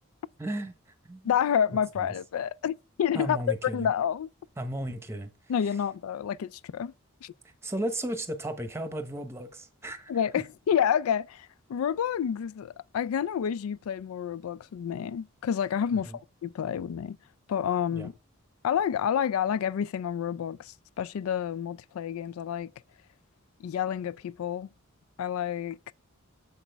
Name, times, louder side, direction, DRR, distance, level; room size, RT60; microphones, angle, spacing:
voice 1, 0.4-0.8 1.0-1.4 1.7-2.1 3.1-3.9 4.6-5.3 7.6-10.4 15.9-16.2 17.9-18.1, right 1 dB, 10° right, 0.9 m, -35 dB
voice 2, 1.2-3.4 3.7-4.3 5.5-6.9 7.2-7.3 10.1-16.1 16.4-17.2 17.5-18.1 18.6-22.7 23.6-24.7 25.2-25.9, left 8 dB, 80° left, 0.3 m, -29 dB
7.1 x 6.0 x 3.4 m
head